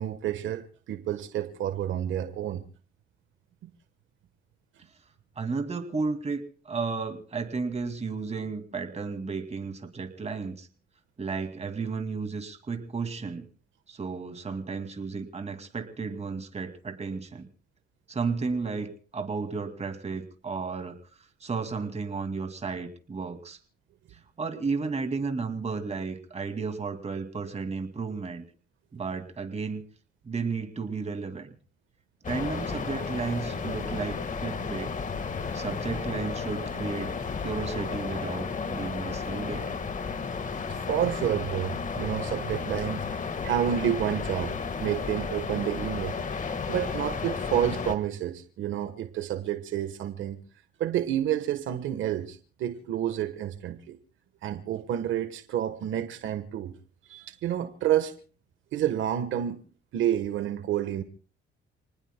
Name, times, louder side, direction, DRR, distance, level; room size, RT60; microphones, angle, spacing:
voice 1, 0.0-2.6 40.7-43.1 43.4-46.2 46.7-50.4 50.8-54.0 54.4-56.7 57.1-58.1 58.7-59.6 59.9-61.0, right 11 dB, 80° right, 1.3 m, -29 dB
voice 2, 5.4-10.7 11.2-13.5 13.9-17.5 18.1-23.6 24.1-28.4 28.9-29.8 30.2-31.6 32.2-34.9 35.5-37.1 37.4-39.7, right 4 dB, 35° right, 2.4 m, -33 dB
sound 1, 32.2-48.0, left 5 dB, 40° left, 1.6 m, -33 dB
28.5 x 19.5 x 2.2 m
cardioid pair, 90°, 20 cm